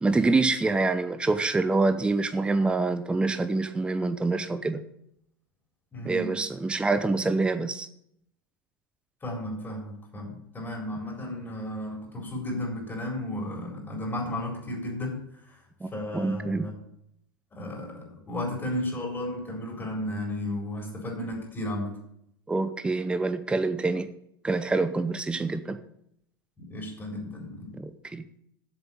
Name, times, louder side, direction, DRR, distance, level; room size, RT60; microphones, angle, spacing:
voice 1, 0.0-4.8 6.0-7.9 15.8-16.7 22.5-24.1 24.4-25.8 27.7-28.4, right 3 dB, 10° right, 10 dB, 0.7 m, -26 dB
voice 2, 5.9-6.4 9.2-15.6 15.9-16.7 17.5-22.0 26.6-27.8, left 1 dB, 20° left, 0 dB, 4.1 m, -34 dB
8.1 x 6.9 x 8.3 m, 0.73 s
figure-of-eight pair, 90°, 12 cm